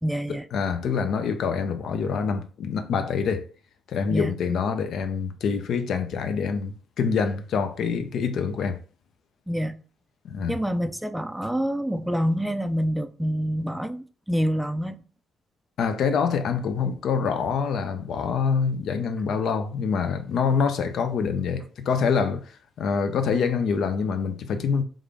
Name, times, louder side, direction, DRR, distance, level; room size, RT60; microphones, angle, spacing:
voice 1, 0.0-0.5 4.1-4.4 9.5-9.8 10.5-15.0, equal, 5° right, 0.4 m, -27 dB
voice 2, 0.5-3.4 3.9-8.8 10.2-10.5 15.8-22.4 22.8-24.8, left 6 dB, 70° left, 0.5 m, -25 dB
3.6 x 2.5 x 3.3 m
cardioid pair, 90°, 0 cm